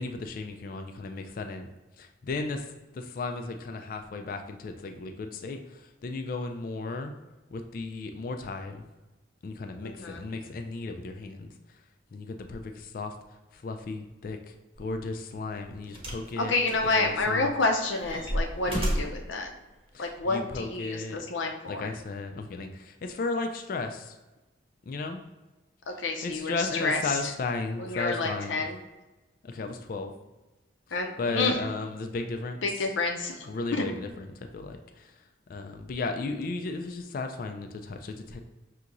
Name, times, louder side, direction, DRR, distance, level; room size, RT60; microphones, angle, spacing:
voice 1, 0.0-1.7 2.0-7.1 7.5-8.8 9.4-11.5 12.1-13.1 13.5-16.5 16.9-17.5 19.9-21.2 21.7-24.1 24.9-25.2 26.2-28.6 29.4-30.1 31.2-32.6 33.5-35.1 35.5-38.4, left 3 dB, 50° left, 5 dB, 0.3 m, -35 dB
voice 2, 9.8-10.3 16.4-19.5 20.0-21.9 26.0-27.3 27.8-28.8 30.9-31.6 32.6-33.9, left 3 dB, 90° left, 3 dB, 0.6 m, -29 dB
sound 1, 14.8-14.9 15.9-16.3 16.7-17.4 17.8-19.3 20.2-20.3, equal, 30° right, 0.8 m, -32 dB
5.8 x 2.8 x 2.5 m, 1.1 s
head